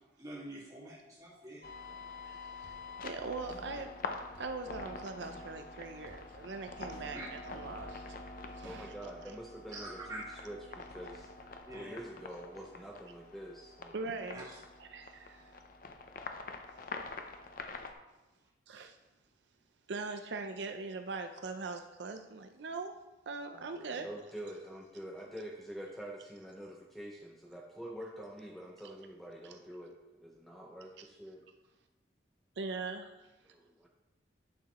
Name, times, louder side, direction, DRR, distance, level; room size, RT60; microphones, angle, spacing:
voice 1, 0.2-1.6 7.1-7.3 9.7-10.4 11.7-11.9 14.3-14.6, right 2 dB, 20° right, -4 dB, 1.8 m, -45 dB
sound 1, 1.6-17.9, left 3 dB, 50° left, 0.6 m, -46 dB
sound 2, 1.9-2.8 3.5-4.6 5.2-6.3 6.9-8.0 8.6-8.8, right 1 dB, 90° right, 1.9 m, -57 dB
voice 2, 2.3-2.7 3.0-3.9 4.4-8.1 8.6-8.9 13.9-14.5 14.8-15.6 18.7-19.0 19.9-22.9 23.3-24.1 29.4-29.5 31.0-31.1 32.6-33.3, right 3 dB, 70° right, 6 dB, 0.5 m, -41 dB
voice 3, 8.6-11.3 11.7-13.9 23.5-31.4 33.4-33.9, right 1 dB, ahead, -1 dB, 0.5 m, -46 dB
10.5 x 6.0 x 3.0 m, 1.0 s
head